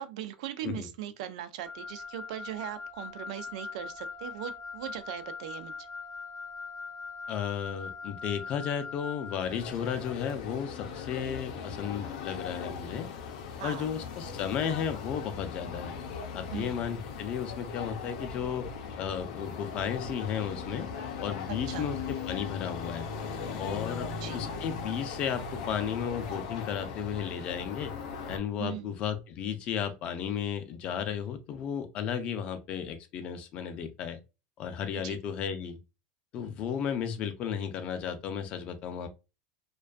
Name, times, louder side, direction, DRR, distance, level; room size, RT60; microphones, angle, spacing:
voice 1, 0.0-5.9 13.6-13.9 16.5-16.8 21.5-21.9 24.2-24.5 28.6-28.9 35.0-35.2, right 11 dB, 85° right, 0.4 m, -39 dB
Wind instrument woodwind instrument, 1.6-9.4, left 4 dB, 15° right, 0.5 m, -41 dB
voice 2, 7.3-13.1 13.6-15.9 16.3-18.7 19.0-20.9 21.2-23.1 23.6-27.9 28.3-34.2 34.6-35.8 36.3-39.1, left 8 dB, 35° left, 0.4 m, -34 dB
sound 1, 9.4-28.4, left 5 dB, 85° left, 0.5 m, -39 dB
2.5 x 2.2 x 2.3 m
supercardioid pair, 170°, 3 cm